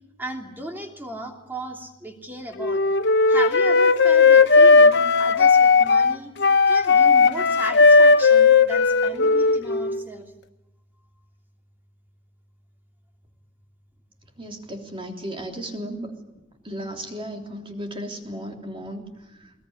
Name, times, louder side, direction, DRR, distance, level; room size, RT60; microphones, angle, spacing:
voice 1, 0.2-2.8 3.3-6.3 6.7-10.3, right 1 dB, 10° right, 2 dB, 3.0 m, -35 dB
Wind instrument woodwind instrument, 2.6-10.0, left 4 dB, 55° left, 1.0 m, -16 dB
voice 2, 14.4-16.1 16.6-19.5, equal, 25° right, 3 dB, 3.4 m, -35 dB
21.0 x 21.0 x 9.9 m, 0.98 s
head